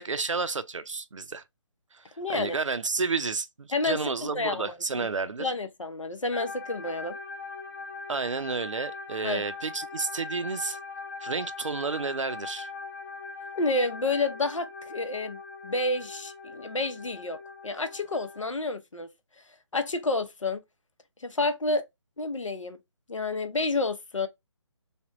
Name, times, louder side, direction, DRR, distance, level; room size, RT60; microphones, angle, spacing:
voice 1, 0.0-1.4 1.9-2.0 2.3-5.5 8.1-10.8 11.2-12.7, right 4 dB, 85° right, 0.5 m, -31 dB
voice 2, 2.2-2.6 3.7-4.0 4.3-5.1 5.4-7.2 9.2-9.4 13.5-17.4 17.6-19.1 19.7-20.6 21.2-21.8 22.2-22.8 23.1-24.3, left 2 dB, 90° left, 0.7 m, -29 dB
sound 1, 6.3-18.5, left 3 dB, 35° left, 0.8 m, -41 dB
3.4 x 2.1 x 2.5 m
figure-of-eight pair, 150°, 16 cm